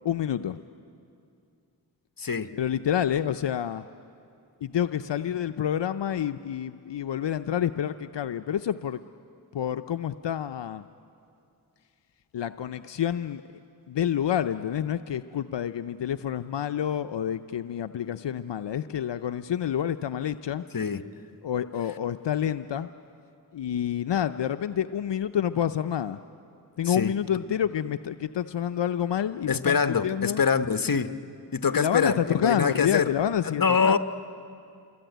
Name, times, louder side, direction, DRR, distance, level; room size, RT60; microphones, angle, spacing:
voice 1, 0.0-0.6 2.6-3.8 4.6-9.0 9.5-10.9 12.3-13.4 13.9-20.6 21.4-22.9 23.5-26.2 26.8-29.8 30.0-30.4 31.7-34.0, left 9 dB, 85° left, 10 dB, 0.6 m, -28 dB
voice 2, 2.2-2.5 20.7-21.0 26.8-27.1 29.5-31.1 31.5-33.1 33.4-34.0, left 6 dB, 55° left, 10 dB, 1.0 m, -24 dB
28.0 x 23.0 x 9.1 m, 2.6 s
cardioid pair, 40°, 42 cm